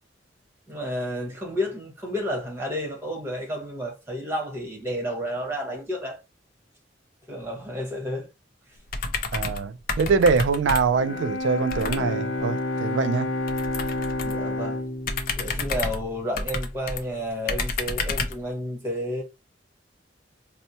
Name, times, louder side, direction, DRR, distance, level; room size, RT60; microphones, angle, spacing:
voice 1, 0.7-6.2 7.3-8.3 14.2-14.8 15.4-19.2, equal, 15° right, 1.2 m, -31 dB
sound 1, 8.9-9.6 9.9-11.1 11.7-12.1 13.5-14.4 15.0-17.0 17.5-18.4, left 3 dB, 50° left, 0.5 m, -30 dB
voice 2, 9.3-13.3, right 4 dB, 80° right, 0.4 m, -23 dB
Bowed string instrument, 10.9-16.9, left 2 dB, 85° left, 0.7 m, -30 dB
4.3 x 2.0 x 2.8 m
head